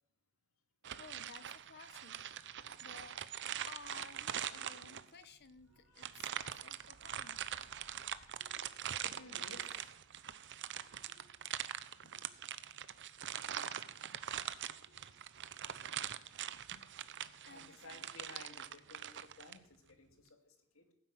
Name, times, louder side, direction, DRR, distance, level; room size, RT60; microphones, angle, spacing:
sound 1, 0.8-5.2 6.0-19.6, right 10 dB, 55° right, 0.8 m, -43 dB
voice 1, 0.9-3.2 3.6-6.3 6.6-7.6 12.0-12.2 16.7-16.9 17.2-18.1, left 4 dB, 50° left, 12 dB, 1.3 m, -57 dB
voice 2, 5.7-6.0 9.0-9.9 11.2-11.3 12.2-12.3 13.3-13.7 14.9-15.0 17.5-19.6 20.0-20.8, left 3 dB, 70° left, 6 dB, 2.6 m, -56 dB
16.5 x 9.7 x 7.9 m, 0.82 s
head